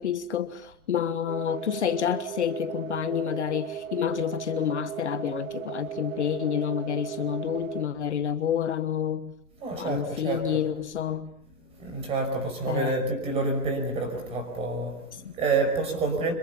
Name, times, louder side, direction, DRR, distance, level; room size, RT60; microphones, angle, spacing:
voice 1, 0.0-9.3 9.7-11.3 12.7-12.9 15.2-15.3, left 9 dB, 50° left, 1.4 m, -29 dB
sound 1, 1.3-7.9, right 9 dB, 60° right, 2.1 m, -37 dB
voice 2, 9.6-10.7 11.7-16.3, right 3 dB, 15° right, 5.6 m, -28 dB
26.5 x 23.0 x 7.1 m
hypercardioid pair, 155°, 44 cm